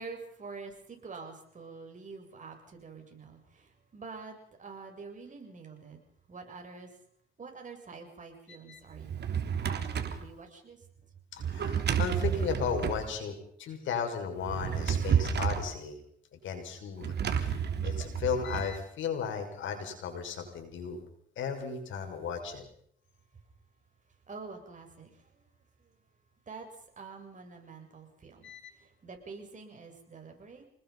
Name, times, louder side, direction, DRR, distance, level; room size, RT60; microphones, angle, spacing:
voice 1, 0.0-6.0 6.3-6.9 7.4-9.2 9.6-10.8 24.3-25.5 25.8-25.9 26.5-26.7 27.0-30.7, right 4 dB, 40° right, 3 dB, 7.5 m, -47 dB
Drawer open or close, 8.9-10.2 11.4-13.1 14.4-15.7 17.0-18.7, right 8 dB, 55° right, 3.4 m, -30 dB
voice 2, 11.3-16.0 16.4-17.1 17.4-21.0 21.4-22.6 28.4-28.6, left 6 dB, 75° left, 5 dB, 6.0 m, -35 dB
29.0 x 20.0 x 5.5 m, 0.66 s
cardioid pair, 90°, 20 cm